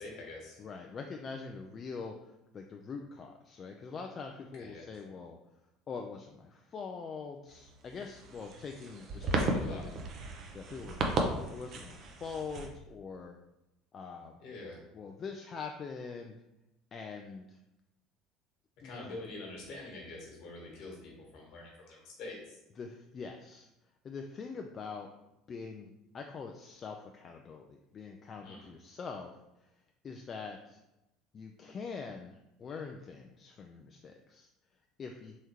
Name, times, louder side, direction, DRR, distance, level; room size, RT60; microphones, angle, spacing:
voice 1, 0.0-0.6 4.6-4.8 8.7-9.9 14.4-14.8 18.8-22.6 28.4-28.7, left 2 dB, 60° left, -2 dB, 1.4 m, -46 dB
voice 2, 0.6-5.4 5.9-10.0 10.5-13.4 13.9-14.4 14.9-16.4 16.9-17.6 18.8-19.1 22.8-23.7 24.0-25.1 25.5-29.4 30.0-30.8 31.3-34.5 35.0-35.4, left 5 dB, 40° left, 3 dB, 0.3 m, -44 dB
sound 1, 7.5-12.7, right 2 dB, 50° right, 0.6 m, -35 dB
3.6 x 3.1 x 3.0 m, 0.92 s
hypercardioid pair, 70°, 0 cm